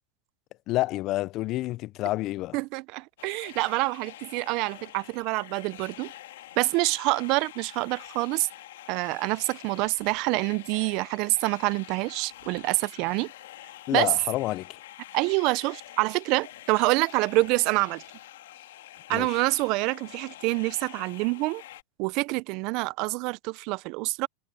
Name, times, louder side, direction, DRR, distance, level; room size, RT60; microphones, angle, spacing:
voice 1, 0.7-2.6 13.9-14.8 19.1-19.4, left 17 dB, 40° left, 0.4 m, -29 dB
voice 2, 2.5-6.1 6.6-8.5 8.9-13.3 13.9-14.1 15.1-18.0 19.1-21.6 22.0-24.3, right 24 dB, 45° right, 0.4 m, -26 dB
sound 1, 3.2-21.8, left 14 dB, 80° left, 1.6 m, -47 dB
supercardioid pair, 150°, 0 cm